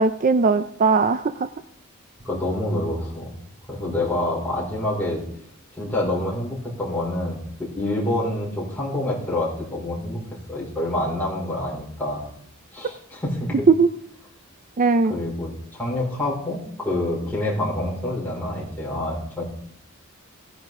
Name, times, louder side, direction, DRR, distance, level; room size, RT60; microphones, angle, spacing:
voice 1, 0.0-1.5 13.7-13.9 14.8-15.2, right 4 dB, 40° right, 11 dB, 0.5 m, -18 dB
voice 2, 2.2-3.3 3.7-5.2 5.8-10.2 10.5-12.2 12.7-13.7 15.1-19.4, left 1 dB, 10° left, -5 dB, 5.0 m, -27 dB
16.5 x 10.5 x 3.7 m, 0.68 s
head